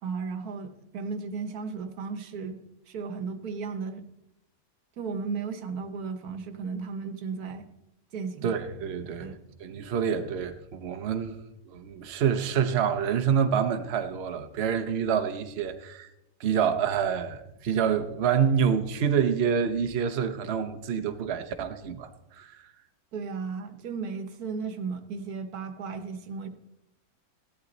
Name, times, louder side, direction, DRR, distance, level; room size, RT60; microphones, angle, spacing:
voice 1, 0.0-2.6 2.9-4.0 5.0-7.7 8.1-8.6 9.2-9.4 23.1-26.5, right 5 dB, 80° right, 1.5 m, -35 dB
voice 2, 8.4-9.3 9.6-11.4 11.7-16.1 16.4-22.5, right 7 dB, 50° right, 1.0 m, -27 dB
15.5 x 11.5 x 4.0 m
omnidirectional pair, 1.6 m